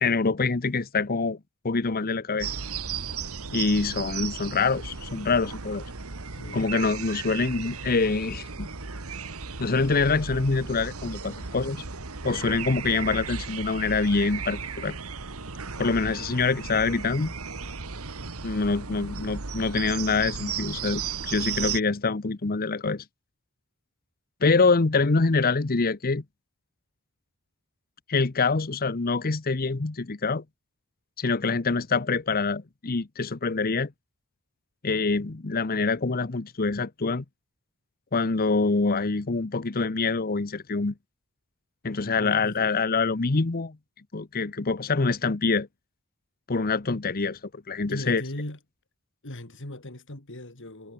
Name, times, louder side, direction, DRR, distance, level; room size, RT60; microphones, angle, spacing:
voice 1, 0.0-1.4 1.6-2.5 3.5-5.8 6.5-8.7 9.6-11.8 12.2-15.0 15.8-17.3 18.4-23.0 24.4-26.2 28.1-30.4 31.2-33.9 34.8-37.2 38.1-40.9 41.8-43.8 44.1-45.7 46.5-48.2, left 4 dB, 40° left, 0.9 m, -25 dB
sound 1, 2.4-21.8, right 5 dB, 70° right, 1.8 m, -35 dB
voice 2, 6.3-6.7 42.2-42.7 47.9-48.6 49.2-50.9, left 1 dB, 60° left, 3.4 m, -38 dB
head